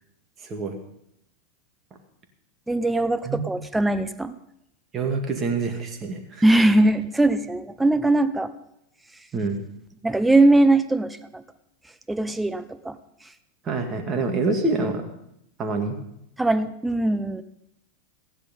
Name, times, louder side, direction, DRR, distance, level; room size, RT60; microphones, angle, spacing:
voice 1, 0.4-0.8 3.2-3.5 4.9-6.4 9.3-9.6 13.6-15.1 15.6-16.0, right 3 dB, 25° right, 4 dB, 2.1 m, -26 dB
voice 2, 2.7-4.3 6.4-8.5 10.0-11.4 12.1-13.0 16.4-17.4, right 2 dB, 5° right, 12 dB, 0.8 m, -20 dB
15.0 x 10.0 x 5.4 m, 0.78 s
hypercardioid pair, 120°, 0 cm